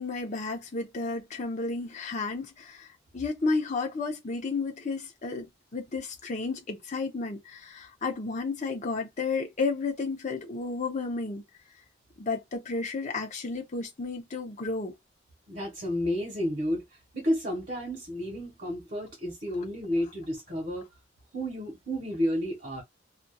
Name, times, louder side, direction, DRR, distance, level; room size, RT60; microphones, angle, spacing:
voice 1, 0.0-5.5 5.7-11.4 12.2-14.9, left 3 dB, 40° left, 0.7 m, -32 dB
voice 2, 15.5-16.8 17.1-20.8 21.3-22.8, equal, 50° right, 1.3 m, -31 dB
2.7 x 2.3 x 2.3 m
head